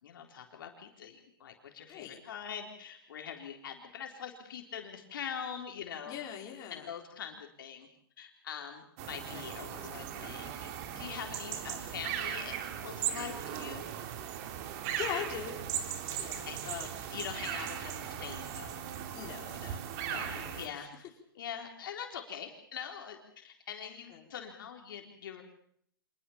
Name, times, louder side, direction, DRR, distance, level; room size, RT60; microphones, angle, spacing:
voice 1, 0.0-6.1 6.7-7.9 8.2-10.7 11.0-12.6 12.8-13.8 16.5-18.8 20.1-21.1 21.4-25.4, left 8 dB, 65° left, 3 dB, 3.8 m, -43 dB
voice 2, 6.1-6.9 9.3-10.4 14.5-14.6 15.0-15.6 16.2-16.9 19.1-19.8 20.1-20.6 24.1-24.2, left 9 dB, 30° left, 1 dB, 4.5 m, -42 dB
sound 1, 9.0-20.7, right 9 dB, 45° right, 3.0 m, -38 dB
25.5 x 20.0 x 7.2 m, 0.67 s
hypercardioid pair, 130°, 12 cm